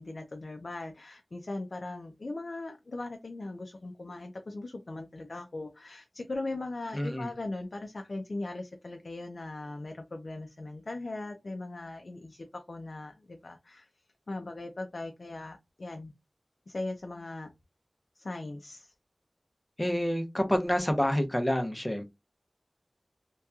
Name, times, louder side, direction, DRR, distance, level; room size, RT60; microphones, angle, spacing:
voice 1, 0.0-13.9 14.3-16.1 16.7-17.5 18.2-18.9, left 2 dB, 75° left, 0.4 m, -39 dB
voice 2, 6.9-7.3 19.8-22.0, equal, 15° left, 0.6 m, -28 dB
2.8 x 2.2 x 2.3 m
wide cardioid pair, 55°, 0 cm